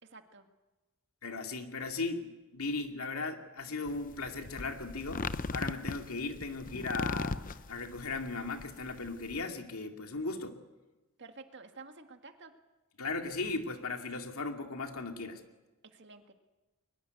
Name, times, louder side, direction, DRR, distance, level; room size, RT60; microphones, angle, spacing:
voice 1, 0.0-0.5 11.2-12.5 15.9-16.3, right 3 dB, 55° right, 6 dB, 1.8 m, -51 dB
voice 2, 1.2-10.6 13.0-15.4, left 3 dB, 90° left, 4 dB, 2.5 m, -37 dB
sound 1, 3.9-9.4, left 3 dB, 40° left, 0.7 m, -38 dB
22.5 x 20.5 x 8.3 m, 1.1 s
head